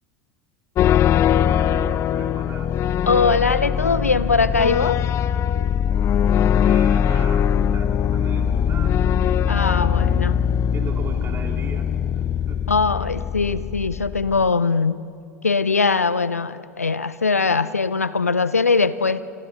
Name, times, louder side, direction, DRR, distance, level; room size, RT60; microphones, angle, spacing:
sound 1, 0.8-14.5, left 8 dB, 35° left, 0.6 m, -21 dB
voice 1, 1.3-2.7 6.5-9.0 9.4-10.2 10.7-11.9 12.1-12.6, right 5 dB, 30° right, 2 dB, 3.1 m, -38 dB
voice 2, 3.1-5.0 9.5-10.3 12.7-15.0 15.4-19.2, left 4 dB, 90° left, 16 dB, 0.5 m, -21 dB
28.5 x 22.5 x 4.1 m, 2.3 s
figure-of-eight pair, 80°, 8 cm